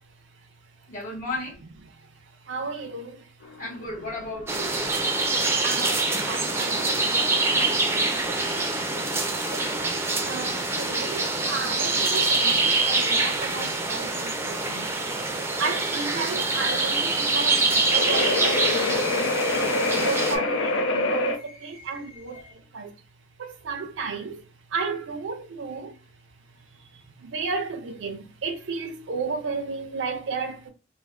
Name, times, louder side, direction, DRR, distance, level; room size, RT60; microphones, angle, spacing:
voice 1, 0.9-1.6 3.6-4.7 20.5-20.7 21.4-22.5, left 2 dB, 45° left, 1.5 m, -36 dB
voice 2, 1.8-3.6 5.1-8.2 9.4-9.9 10.3-15.2 15.6-19.4 19.9-22.9 23.4-26.0 26.6-30.7, right 4 dB, 75° right, 0.4 m, -34 dB
sound 1, 3.4-21.4, left 3 dB, 90° left, 0.5 m, -30 dB
sound 2, 4.5-20.4, right 3 dB, 15° right, 0.4 m, -25 dB
3.2 x 2.0 x 2.3 m
head